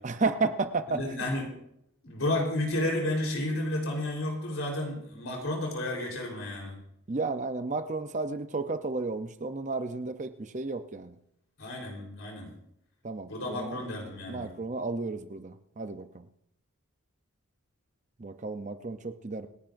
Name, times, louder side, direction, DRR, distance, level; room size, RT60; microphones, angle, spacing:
voice 1, 0.0-1.0 7.1-11.1 13.0-13.8 14.3-16.2 18.2-19.5, right 3 dB, 35° right, 9 dB, 0.6 m, -32 dB
voice 2, 0.9-1.5 2.0-6.8 11.6-12.5 13.3-14.5, left 1 dB, 70° left, 0 dB, 3.9 m, -32 dB
27.0 x 10.5 x 2.6 m, 0.75 s
head